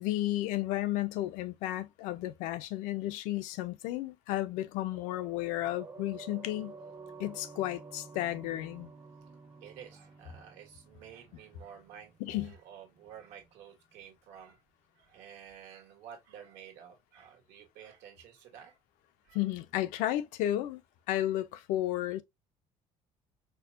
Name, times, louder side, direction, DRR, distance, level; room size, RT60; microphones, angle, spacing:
voice 1, 0.0-6.7 7.2-8.9 12.2-12.6 19.3-20.8 21.1-22.2, left 14 dB, 90° left, 0.5 m, -33 dB
sound 1, 4.9-13.5 13.8-13.9, right 4 dB, 20° right, 0.5 m, -51 dB
voice 2, 9.6-14.6 14.9-18.8 19.2-19.5 19.9-20.1 21.9-22.0, right 8 dB, 80° right, 1.4 m, -51 dB
4.6 x 2.1 x 2.5 m
cardioid pair, 165°, 13 cm